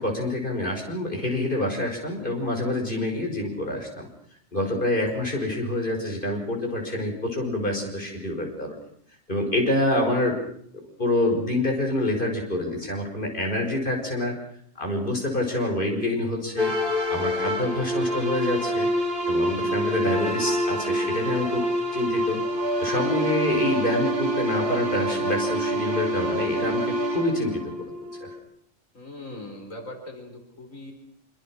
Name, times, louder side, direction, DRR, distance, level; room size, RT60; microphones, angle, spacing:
voice 1, 0.0-4.1 4.5-8.7 9.3-10.4 11.0-14.3 14.8-16.7 17.1-18.9 19.3-21.6 21.9-22.4 22.8-27.7 28.0-28.3, left 1 dB, 40° left, 1 dB, 5.9 m, -27 dB
sound 1, 16.6-28.4, equal, 40° right, 4.0 m, -26 dB
voice 2, 28.9-30.9, left 2 dB, 90° left, 3 dB, 4.8 m, -40 dB
25.5 x 24.5 x 6.3 m, 0.64 s
omnidirectional pair, 1.4 m